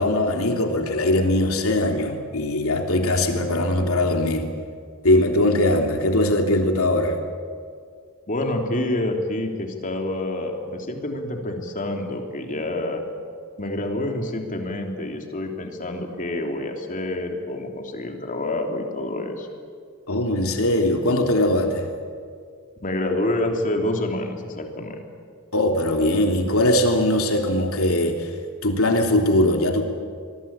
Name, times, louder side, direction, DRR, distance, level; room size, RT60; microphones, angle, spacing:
voice 1, 0.0-4.5 5.0-7.2 20.1-21.9 25.5-28.4 28.6-29.8, left 1 dB, 70° left, 3 dB, 3.2 m, -21 dB
voice 2, 8.3-13.0 13.6-19.5 22.8-25.0, left 1 dB, 35° left, 3 dB, 3.2 m, -27 dB
25.5 x 22.0 x 8.8 m, 2.1 s
head